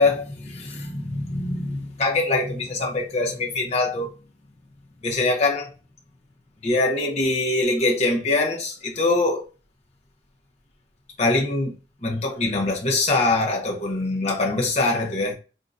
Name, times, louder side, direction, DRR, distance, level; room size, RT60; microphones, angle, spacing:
voice 1, 0.0-4.1 5.0-5.7 6.6-9.5 11.2-11.7 12.0-15.3, left 2 dB, 40° left, 0.8 m, -23 dB
3.5 x 2.6 x 2.4 m
head